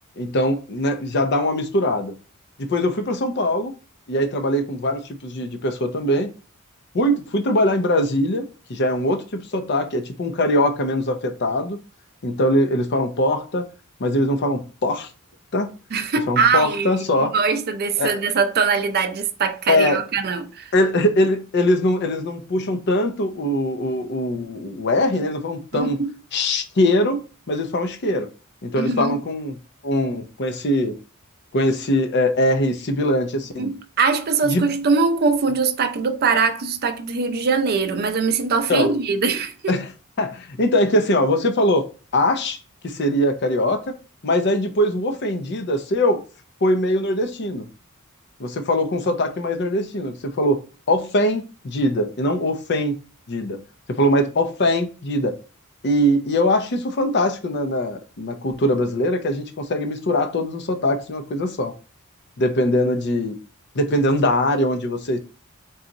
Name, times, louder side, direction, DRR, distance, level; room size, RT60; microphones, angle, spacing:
voice 1, 0.2-2.2 2.6-3.7 4.1-6.3 6.9-8.4 8.7-11.8 12.2-13.7 14.0-15.1 15.5-15.7 16.3-17.3 18.0-18.2 19.7-20.0 20.7-26.0 26.3-28.3 28.6-29.6 29.8-31.0 31.5-33.7 34.5-34.7 38.7-38.9 39.7-39.9 40.2-41.9 42.1-44.0 44.2-46.2 46.6-47.7 48.4-50.6 50.9-53.0 53.3-53.6 53.9-55.4 55.8-61.7 62.4-63.4 63.7-65.2, left 1 dB, 50° left, 0.6 m, -22 dB
voice 2, 15.9-20.7 25.7-26.1 28.8-29.2 33.6-39.8, right 4 dB, 45° right, 0.5 m, -22 dB
4.0 x 2.3 x 3.8 m
head